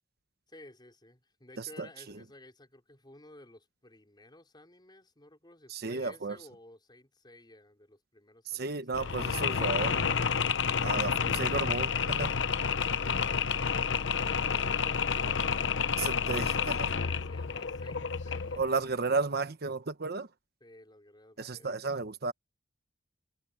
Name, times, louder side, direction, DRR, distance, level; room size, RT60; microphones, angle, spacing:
voice 1, 0.5-9.6 12.1-18.7 20.6-22.0, left 1 dB, 25° left, 4.7 m, -55 dB
voice 2, 1.6-1.9 5.7-6.4 8.5-10.2 10.8-12.3 16.0-16.9 18.6-20.3 21.4-22.3, right 4 dB, 60° right, 1.1 m, -33 dB
Mechanisms, 8.9-18.7, left 6 dB, 75° left, 0.8 m, -30 dB
head